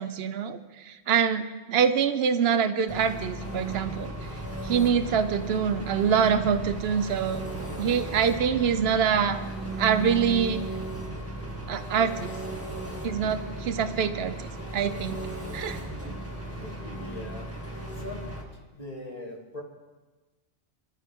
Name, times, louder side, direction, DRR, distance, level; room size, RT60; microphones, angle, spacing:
voice 1, 0.0-4.1 4.6-7.5 7.8-9.4 9.8-10.6 11.7-12.3 13.0-14.5 14.7-15.2 15.5-15.8, right 7 dB, 65° right, 10 dB, 1.1 m, -25 dB
Engine, 2.9-18.4, right 2 dB, 10° right, 2.1 m, -36 dB
voice 2, 16.5-18.3 18.7-19.6, left 2 dB, 35° left, -3 dB, 3.2 m, -41 dB
25.5 x 14.0 x 3.8 m, 1.2 s
omnidirectional pair, 1.1 m